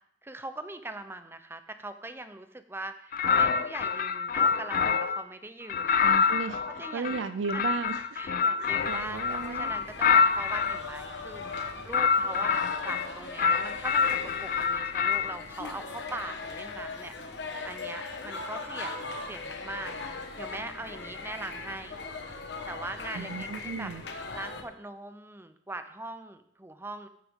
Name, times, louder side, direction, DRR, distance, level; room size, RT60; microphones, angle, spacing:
voice 1, 0.2-6.0 6.7-7.2 7.5-7.7 8.2-11.4 11.8-17.1 17.6-22.0 22.7-23.9 24.3-27.1, right 2 dB, 15° right, 10 dB, 0.6 m, -41 dB
sound 1, 3.1-5.2 5.7-10.8 11.5-13.1 13.4-15.3, left 6 dB, 50° left, 0.5 m, -26 dB
voice 2, 6.0-6.6 6.9-8.2 8.6-9.7 23.1-24.0, right 5 dB, 80° right, 12 dB, 0.4 m, -35 dB
sound 2, 8.8-24.6, left 3 dB, 65° left, 1.2 m, -40 dB
15.0 x 6.6 x 3.7 m, 0.70 s
head